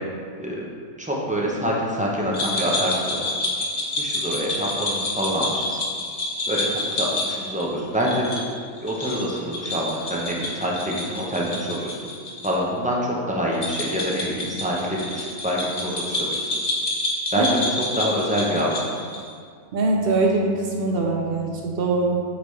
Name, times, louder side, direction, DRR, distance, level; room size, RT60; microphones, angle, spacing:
voice 1, 1.0-3.2 4.0-5.8 6.5-8.4 8.8-11.9 12.4-16.4 17.3-17.7 17.9-18.8, equal, 10° right, -4 dB, 0.4 m, -26 dB
sound 1, 2.3-12.5 12.8-12.9 13.5-19.3, left 2 dB, 40° left, 0.8 m, -28 dB
voice 2, 19.7-22.2, right 3 dB, 55° right, 0 dB, 0.7 m, -22 dB
8.1 x 4.0 x 3.2 m, 2.1 s
omnidirectional pair, 1.5 m